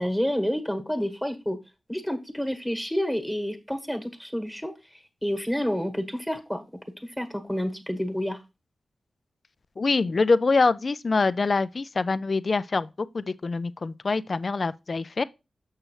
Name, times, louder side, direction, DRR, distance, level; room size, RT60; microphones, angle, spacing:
voice 1, 0.0-1.6 1.9-6.6 7.0-8.4, equal, 5° left, 1.3 m, -29 dB
voice 2, 9.8-12.9 13.1-15.2, left 3 dB, 50° left, 0.3 m, -24 dB
6.4 x 6.2 x 3.1 m
cardioid pair, 70°, 0 cm